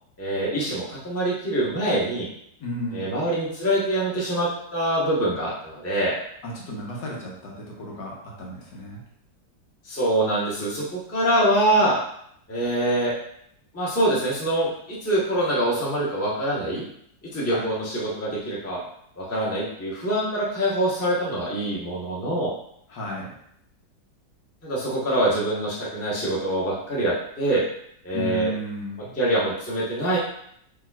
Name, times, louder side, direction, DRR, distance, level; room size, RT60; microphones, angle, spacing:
voice 1, 0.2-2.3 2.9-6.1 9.8-12.0 12.5-13.1 13.7-16.8 17.3-18.8 19.2-22.5 24.6-27.6 28.0-28.5 29.2-30.2, right 1 dB, 10° left, -6 dB, 1.0 m, -24 dB
voice 2, 2.6-3.1 6.4-9.0 17.5-17.7 22.9-23.3 28.1-29.1, equal, 70° left, -3 dB, 1.7 m, -33 dB
6.6 x 3.4 x 2.4 m, 0.71 s
omnidirectional pair, 2.0 m